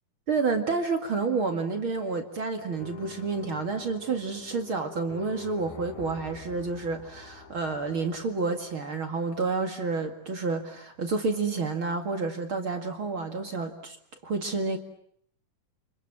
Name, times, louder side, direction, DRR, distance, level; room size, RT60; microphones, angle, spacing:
voice 1, 0.3-14.0 14.2-14.8, right 4 dB, 40° right, 5 dB, 2.5 m, -29 dB
sound 1, 2.7-9.8, left 7 dB, 90° left, 4.4 m, -46 dB
29.5 x 27.0 x 7.5 m, 0.67 s
omnidirectional pair, 4.0 m